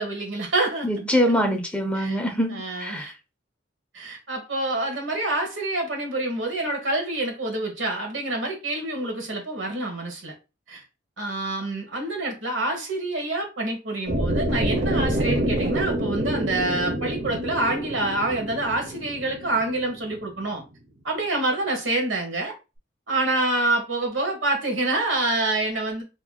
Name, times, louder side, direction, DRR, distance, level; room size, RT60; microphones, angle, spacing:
voice 1, 0.0-0.9 1.9-2.2 2.5-3.1 3.9-10.3 10.7-10.8 11.2-20.6 21.0-22.5 23.1-26.0, right 2 dB, 80° right, 1.3 m, -27 dB
voice 2, 0.8-3.1, equal, 5° left, 0.5 m, -24 dB
sound 1, 14.1-20.2, right 1 dB, 60° right, 1.0 m, -27 dB
4.3 x 2.9 x 2.2 m
head